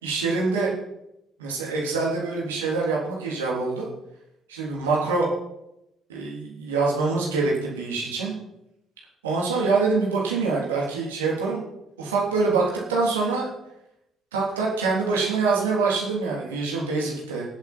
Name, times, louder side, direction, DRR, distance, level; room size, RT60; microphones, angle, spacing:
voice 1, 0.0-0.7 1.4-3.9 4.5-5.3 6.1-8.3 9.2-11.6 12.0-13.5 14.3-17.4, right 4 dB, 80° right, -4 dB, 3.7 m, -25 dB
23.5 x 8.2 x 4.6 m, 0.86 s
figure-of-eight pair, 50°, 0 cm